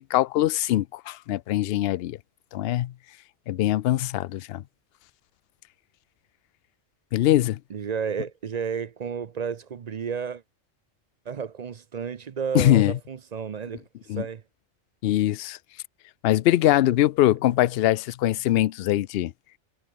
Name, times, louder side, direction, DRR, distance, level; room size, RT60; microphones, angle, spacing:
voice 1, 0.0-2.2 2.5-2.9 3.5-4.6 7.1-7.6 12.5-12.9 14.1-14.2 15.0-15.6 16.2-19.3, left 14 dB, 65° left, 0.7 m, -22 dB
voice 2, 7.7-10.4 11.3-14.4, right 6 dB, 45° right, 0.5 m, -32 dB
omnidirectional pair, 1.3 m